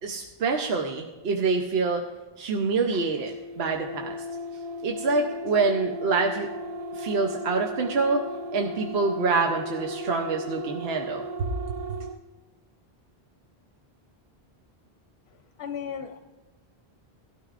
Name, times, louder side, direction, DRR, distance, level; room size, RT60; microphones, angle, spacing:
voice 1, 0.0-2.1 2.4-4.2 4.8-6.5 6.9-11.2, right 4 dB, 75° right, 3 dB, 1.0 m, -26 dB
sound 1, 3.1-12.2, equal, 50° right, 0.4 m, -36 dB
voice 2, 15.6-16.2, left 7 dB, 80° left, 6 dB, 0.9 m, -34 dB
17.5 x 12.0 x 2.5 m, 1.2 s
omnidirectional pair, 1.0 m